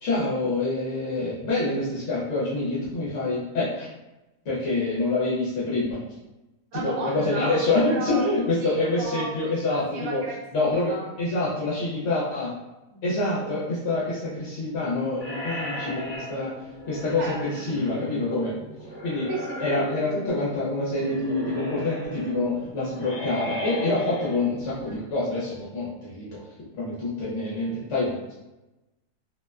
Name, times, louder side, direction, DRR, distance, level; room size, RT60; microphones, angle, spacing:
voice 1, 0.0-3.9 4.4-6.0 6.7-10.2 10.5-12.5 13.0-16.5 16.9-18.5 19.0-19.3 19.6-26.4 26.8-28.3, left 2 dB, 60° left, -8 dB, 0.9 m, -26 dB
voice 2, 6.7-8.3 8.6-9.3 9.7-11.1 12.9-13.1 13.4-13.5 17.2-17.6 19.3-19.9 24.9-25.0, right 3 dB, 60° right, -3 dB, 0.7 m, -35 dB
sound 1, 15.2-25.0, left 1 dB, 30° left, 0.8 m, -36 dB
2.6 x 2.1 x 2.3 m, 1.0 s
omnidirectional pair, 1.6 m